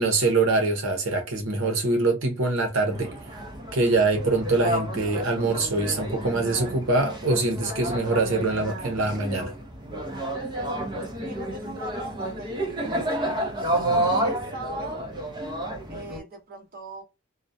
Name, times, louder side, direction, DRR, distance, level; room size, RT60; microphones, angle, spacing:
voice 1, 0.0-3.1 3.7-9.5, right 3 dB, 80° right, 0.7 m, -24 dB
sound 1, 2.9-16.2, right 1 dB, 20° right, 0.6 m, -30 dB
voice 2, 11.3-15.1 15.9-17.0, right 1 dB, 45° right, 1.0 m, -40 dB
2.4 x 2.0 x 2.5 m
head